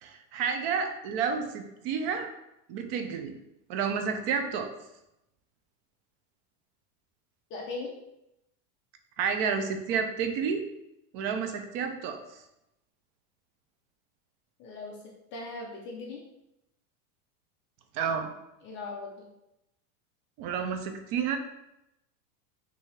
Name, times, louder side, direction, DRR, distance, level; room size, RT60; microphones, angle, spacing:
voice 1, 0.0-2.3 2.7-3.3 3.7-4.7 9.2-10.6 11.1-12.2 17.9-18.3 20.4-21.4, right 6 dB, 45° right, 6 dB, 0.6 m, -30 dB
voice 2, 7.5-7.9 14.6-15.0 15.3-16.2 18.6-19.3, left 3 dB, 30° left, -1 dB, 0.5 m, -39 dB
5.5 x 2.7 x 3.3 m, 0.87 s
supercardioid pair, 160°, 44 cm